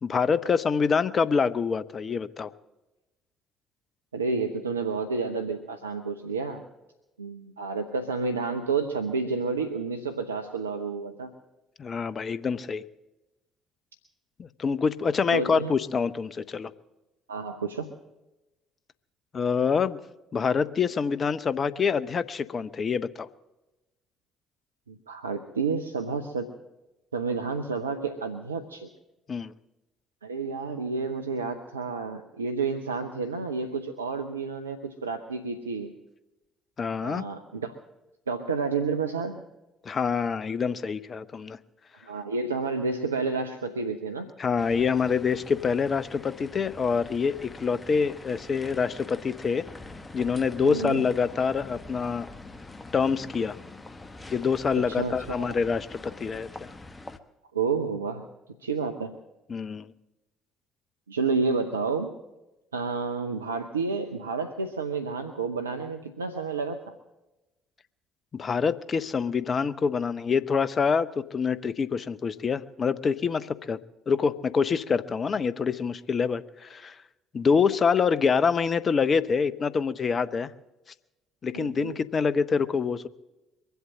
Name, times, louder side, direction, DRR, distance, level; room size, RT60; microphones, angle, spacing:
voice 1, 0.0-2.5 11.8-12.8 14.4-16.7 19.3-20.0 20.3-23.3 29.3-29.5 36.8-37.2 39.8-41.6 44.4-49.7 50.1-52.3 52.9-53.6 54.3-56.5 59.5-59.9 68.3-73.8 74.1-77.0 77.3-80.5 81.4-83.1, left 5 dB, 40° left, 14 dB, 0.7 m, -26 dB
voice 2, 4.1-6.6 7.2-11.3 15.3-15.7 17.3-17.9 24.9-26.5 27.1-28.9 30.2-35.9 37.0-37.7 38.3-39.4 42.0-44.3 50.6-51.0 54.8-55.5 57.5-58.3 58.6-59.2 61.1-62.1 62.7-66.9 81.5-82.0, right 4 dB, 85° right, 6 dB, 0.6 m, -30 dB
sound 1, 44.6-57.2, left 2 dB, 20° left, 1.1 m, -44 dB
22.5 x 8.1 x 7.4 m, 1.0 s
figure-of-eight pair, 50°, 0 cm